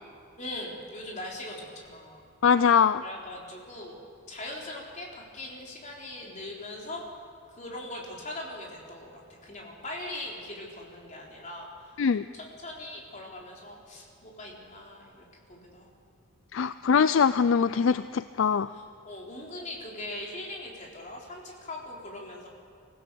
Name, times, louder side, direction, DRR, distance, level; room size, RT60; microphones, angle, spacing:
voice 1, 0.4-2.2 3.0-4.0 4.3-7.0 7.5-15.9 18.7-22.5, left 1 dB, 35° left, -1 dB, 3.7 m, -41 dB
voice 2, 2.4-3.0 12.0-12.3 16.5-18.7, left 6 dB, 60° left, 14 dB, 0.4 m, -22 dB
24.5 x 16.0 x 6.9 m, 2.6 s
head